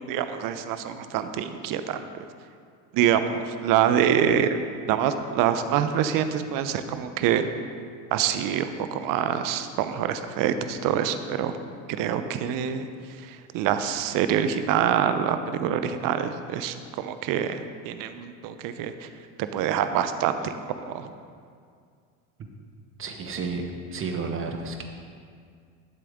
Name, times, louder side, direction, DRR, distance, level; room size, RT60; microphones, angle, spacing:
voice 1, 0.0-2.0 2.9-4.5 4.9-7.5 8.1-11.5 12.0-12.9 13.2-19.1 19.4-20.6 20.9-21.1, right 9 dB, 55° right, 10 dB, 0.7 m, -25 dB
voice 2, 23.0-23.7 23.9-24.8, right 4 dB, 30° right, 4 dB, 1.1 m, -31 dB
11.5 x 7.5 x 3.6 m, 2.2 s
supercardioid pair, 100°, 40 cm